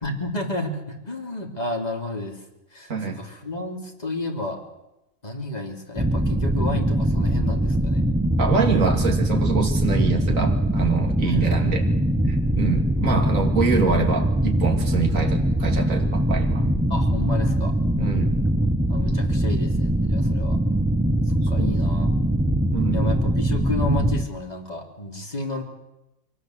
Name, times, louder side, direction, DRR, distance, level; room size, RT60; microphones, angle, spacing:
voice 1, 0.0-2.4 2.7-4.6 5.2-8.0 11.2-11.9 16.9-17.7 18.9-20.6 21.5-22.1 22.9-25.6, left 2 dB, 30° left, 2 dB, 3.4 m, -31 dB
sound 1, 6.0-24.3, right 1 dB, 5° right, 0.6 m, -22 dB
voice 2, 8.4-11.9 12.3-16.6 18.0-18.3 21.6-21.8 22.7-23.2, right 5 dB, 70° right, 3 dB, 2.9 m, -25 dB
23.5 x 18.0 x 8.1 m, 0.94 s
omnidirectional pair, 1.4 m